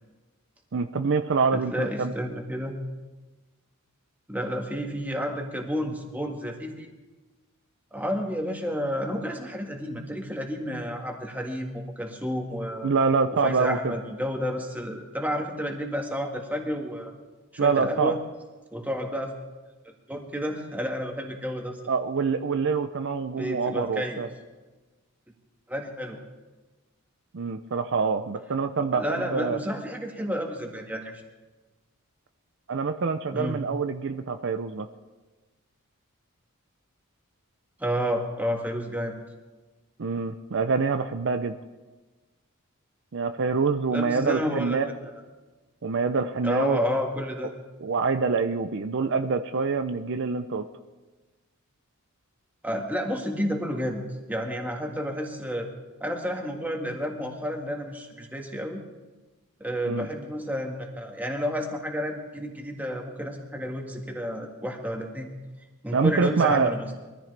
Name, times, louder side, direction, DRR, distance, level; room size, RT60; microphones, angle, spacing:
voice 1, 0.7-2.1 12.8-13.9 17.6-18.1 21.9-24.3 27.3-29.6 32.7-34.9 40.0-41.6 43.1-44.9 45.8-46.8 47.8-50.7 59.8-60.1 65.9-66.7, right 4 dB, 55° right, 8 dB, 0.5 m, -25 dB
voice 2, 1.5-2.8 4.3-6.9 7.9-12.9 13.4-17.1 17.5-18.2 18.7-19.3 20.1-21.8 23.4-24.3 25.7-26.2 28.9-31.2 33.3-33.6 37.8-39.2 43.9-45.1 46.4-47.6 52.6-54.0 54.3-55.7 56.0-58.8 59.6-65.3 65.8-66.9, equal, 10° right, 1 dB, 1.7 m, -31 dB
23.0 x 14.5 x 3.4 m, 1.2 s
head